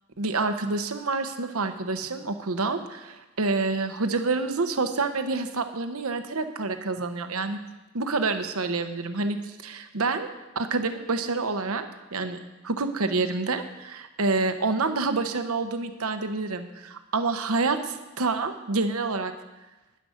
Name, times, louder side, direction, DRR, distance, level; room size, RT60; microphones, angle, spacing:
voice 1, 0.2-7.6 7.9-10.3 10.5-12.4 12.6-19.3, right 3 dB, 85° right, 8 dB, 1.0 m, -28 dB
10.5 x 10.0 x 6.5 m, 1.1 s
head